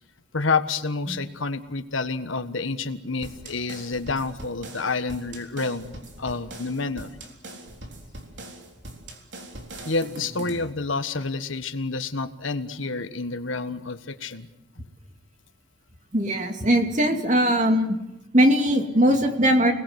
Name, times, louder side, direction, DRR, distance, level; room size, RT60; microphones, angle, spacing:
voice 1, 0.3-7.1 9.8-14.5, left 3 dB, 80° left, 10 dB, 1.5 m, -29 dB
sound 1, 3.2-10.7, right 1 dB, 60° right, 3.7 m, -41 dB
voice 2, 16.1-18.0 18.3-19.7, equal, 35° right, 4 dB, 2.7 m, -20 dB
29.0 x 20.0 x 8.1 m, 0.95 s
head